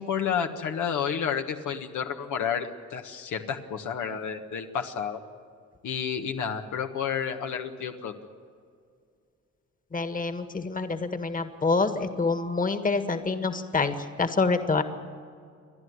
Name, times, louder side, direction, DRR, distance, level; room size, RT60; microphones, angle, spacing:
voice 1, 0.0-5.2 5.8-8.1, left 7 dB, 80° left, 5 dB, 1.5 m, -30 dB
voice 2, 9.9-14.8, left 4 dB, 25° left, 9 dB, 1.7 m, -27 dB
29.5 x 11.5 x 9.6 m, 2.3 s
cardioid pair, 90°, 30 cm